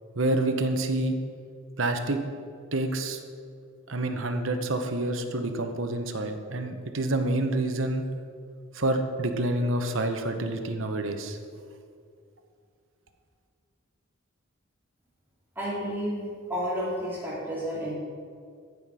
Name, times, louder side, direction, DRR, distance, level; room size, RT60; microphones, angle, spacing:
voice 1, 0.2-1.2 1.8-2.2 2.7-3.2 3.9-8.0 8.7-11.4, right 2 dB, 65° right, 6 dB, 1.0 m, -28 dB
voice 2, 15.6-17.9, equal, 10° right, -8 dB, 2.5 m, -31 dB
14.5 x 5.9 x 4.8 m, 2.3 s
head